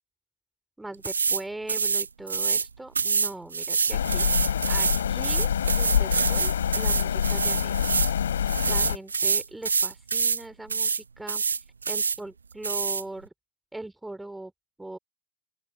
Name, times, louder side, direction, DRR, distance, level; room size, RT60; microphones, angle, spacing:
voice 1, 0.8-7.9 8.7-11.4 11.9-13.3 13.7-14.5 14.8-15.0, right 2 dB, 5° right, 3.2 m, -40 dB
sound 1, 1.0-1.4 1.7-2.7 2.9-8.1 8.5-10.4 10.7-11.0 11.3-12.2 12.6-13.0, right 5 dB, 75° right, 0.7 m, -26 dB
sound 2, 3.9-9.0, left 8 dB, 65° left, 3.8 m, -26 dB
open air
figure-of-eight pair, 90°, 0 cm